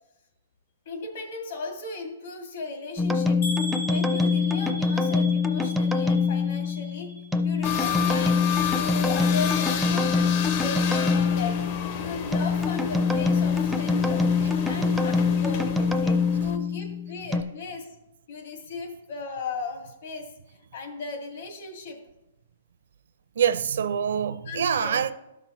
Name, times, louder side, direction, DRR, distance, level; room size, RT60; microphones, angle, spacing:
voice 1, 0.9-3.4 3.9-7.1 7.4-8.4 8.7-11.6 12.0-14.2 14.6-17.9 18.3-22.0 24.5-25.1, left 4 dB, 60° left, 2.1 m, -36 dB
sound 1, 3.0-17.4, left 4 dB, ahead, 0.4 m, -24 dB
sound 2, 3.4-7.4 7.7-8.3 8.8-8.9 9.2-9.3, right 1 dB, 85° left, 3.0 m, -38 dB
sound 3, 7.6-16.6, left 8 dB, 40° left, 0.7 m, -32 dB
voice 2, 23.4-25.1, right 8 dB, 75° right, 0.5 m, -26 dB
13.0 x 6.0 x 3.1 m
hypercardioid pair, 155°, 0 cm